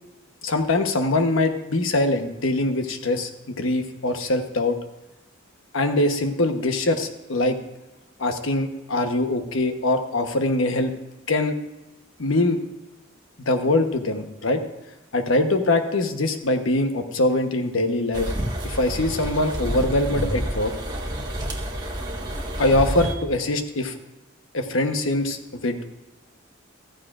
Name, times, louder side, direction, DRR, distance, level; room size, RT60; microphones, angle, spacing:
voice 1, 0.4-4.8 5.7-7.6 8.2-10.9 11.3-11.6 12.2-12.6 13.5-14.6 15.1-18.3 18.6-20.7 22.6-23.9 24.5-25.8, left 2 dB, 85° left, 6 dB, 1.1 m, -23 dB
sound 1, 18.1-23.1, right 1 dB, 20° right, 1.5 m, -29 dB
14.5 x 14.0 x 2.5 m, 1.0 s
head